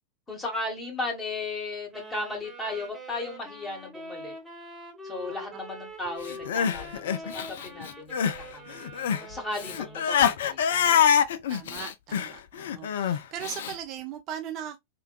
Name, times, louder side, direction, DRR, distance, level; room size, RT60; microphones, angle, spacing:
voice 1, 0.3-4.3 5.0-11.0, left 2 dB, 15° left, 1.3 m, -36 dB
sound 1, 1.9-10.3, equal, 10° right, 1.1 m, -44 dB
Crying sobbing, 6.3-8.4 8.7-13.7, left 8 dB, 60° left, 0.3 m, -25 dB
voice 2, 11.5-14.8, right 9 dB, 35° right, 0.4 m, -38 dB
3.3 x 2.2 x 2.3 m
figure-of-eight pair, 90°, 0 cm